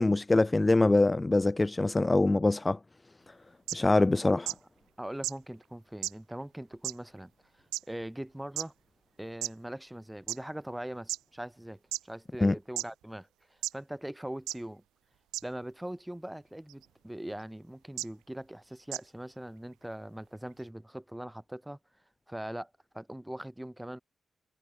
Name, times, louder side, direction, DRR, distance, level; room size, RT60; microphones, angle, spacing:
voice 1, 0.0-2.8 3.7-4.5 12.4-12.5, left 2 dB, 25° left, 0.4 m, -24 dB
sound 1, 3.7-3.8 4.5-4.6 5.2-5.3 6.0-6.1 6.8-6.9 7.7-7.8 8.6-8.7 9.4-9.5 10.3-10.4 11.1-11.2 11.9-12.0 12.8-12.9 13.6-13.7 14.5-14.6 15.3-15.4 16.7-16.9 18.0-18.1 18.9-19.0, right 16 dB, 85° right, 1.9 m, -33 dB
voice 2, 5.0-8.7 9.2-14.8 15.4-21.8 22.3-24.0, right 1 dB, 10° right, 4.3 m, -41 dB
hypercardioid pair, 45°, 0 cm